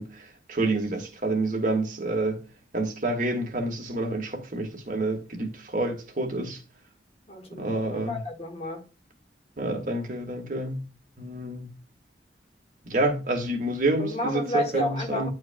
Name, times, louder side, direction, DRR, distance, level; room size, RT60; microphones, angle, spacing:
voice 1, 0.0-2.4 2.7-6.6 7.6-8.2 9.6-10.8 11.2-11.7 12.8-15.3, right 2 dB, 50° right, 1.7 m, -28 dB
voice 2, 7.3-8.8 14.0-15.3, left 1 dB, 35° left, 1.6 m, -31 dB
9.9 x 4.6 x 2.2 m
head